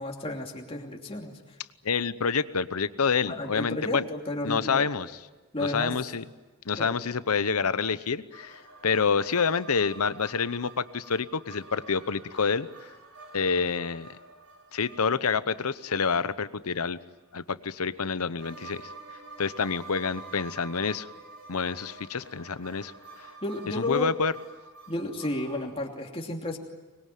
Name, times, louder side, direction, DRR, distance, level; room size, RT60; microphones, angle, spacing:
voice 1, 0.0-1.4 3.3-4.9 5.5-5.9 6.8-6.9 23.4-24.1 24.9-26.6, left 1 dB, 25° left, 1 dB, 2.9 m, -32 dB
voice 2, 1.8-4.0 4.4-5.1 5.6-6.2 6.6-12.7 13.3-14.1 14.7-17.0 17.3-18.8 19.4-21.1 21.5-22.9 23.2-23.3 23.7-24.3, left 5 dB, 85° left, 15 dB, 0.9 m, -28 dB
sound 1, 8.3-16.9 18.4-25.7, right 3 dB, 90° right, 7.2 m, -48 dB
25.0 x 21.5 x 9.3 m, 1.2 s
head